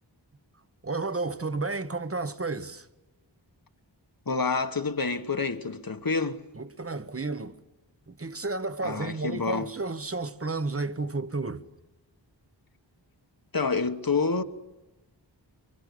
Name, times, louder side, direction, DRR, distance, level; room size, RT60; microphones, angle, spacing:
voice 1, 0.8-2.9 6.5-7.6 8.1-11.7, right 3 dB, 30° right, 1.1 m, -32 dB
voice 2, 4.3-6.4 8.8-9.7 13.5-14.4, left 4 dB, 50° left, 1.4 m, -28 dB
24.5 x 23.5 x 8.4 m
wide cardioid pair, 60°, 44 cm